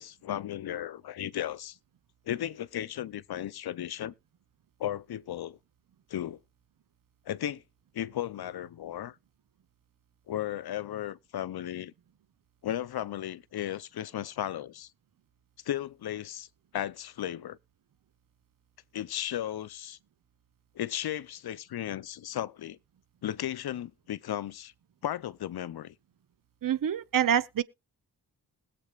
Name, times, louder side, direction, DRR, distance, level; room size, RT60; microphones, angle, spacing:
voice 1, 0.0-1.8 2.3-4.1 4.8-5.6 6.1-6.4 7.3-7.6 7.9-9.2 10.3-11.9 12.6-14.9 15.6-16.5 16.7-17.6 18.9-20.0 20.8-22.8 23.2-24.7 25.0-25.9, left 11 dB, 80° left, 0.6 m, -35 dB
voice 2, 26.6-27.6, right 9 dB, 60° right, 0.7 m, -26 dB
20.5 x 7.6 x 2.3 m
wide cardioid pair, 125°, 38 cm